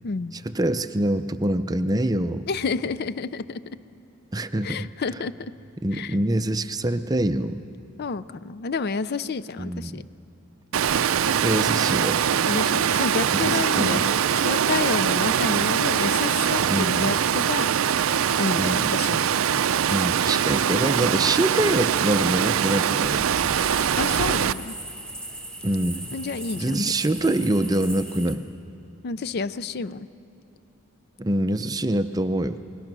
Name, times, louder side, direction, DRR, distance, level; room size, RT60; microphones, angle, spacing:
voice 1, 0.4-2.5 4.3-4.9 5.8-7.6 9.6-10.0 11.4-12.2 13.3-14.1 16.7-17.1 18.5-18.9 19.9-23.6 25.6-26.1 26.6-28.5 31.2-32.6, right 1 dB, 15° right, 10 dB, 0.5 m, -25 dB
voice 2, 2.5-3.6 4.6-5.5 5.9-6.2 8.0-10.0 12.5-17.7 18.4-19.3 24.0-24.7 26.1-26.9 29.0-30.1, left 4 dB, 50° left, 15 dB, 0.4 m, -29 dB
Water, 10.7-24.5, right 8 dB, 70° right, 0.4 m, -22 dB
sound 1, 23.4-28.3, right 1 dB, 5° left, 1.8 m, -38 dB
28.5 x 21.5 x 6.1 m, 2.8 s
head